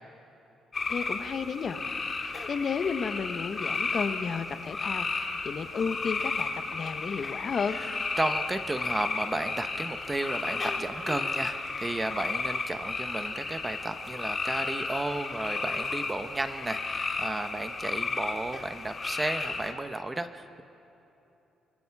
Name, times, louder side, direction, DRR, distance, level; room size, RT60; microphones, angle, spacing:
sound 1, 0.7-19.7, left 3 dB, 35° left, 2.4 m, -33 dB
voice 1, 0.9-1.8 2.2-7.8, left 5 dB, 50° left, 9 dB, 1.2 m, -33 dB
voice 2, 8.2-20.6, right 2 dB, 20° right, 8 dB, 1.1 m, -33 dB
29.0 x 25.0 x 4.8 m, 3.0 s
cardioid pair, 90°, 0 cm